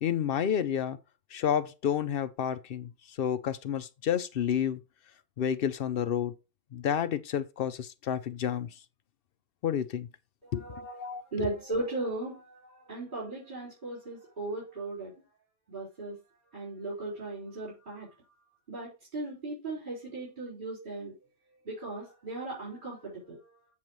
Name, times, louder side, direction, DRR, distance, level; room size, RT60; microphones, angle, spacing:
voice 1, 0.0-1.0 1.3-4.8 5.4-6.3 6.7-8.7 9.6-10.1 10.5-11.5, left 9 dB, 60° left, 0.6 m, -30 dB
voice 2, 10.4-15.1 15.7-16.2 16.5-18.1 18.7-21.1 21.6-23.5, right 2 dB, 35° right, 4.3 m, -37 dB
7.5 x 7.2 x 3.0 m
omnidirectional pair, 1.4 m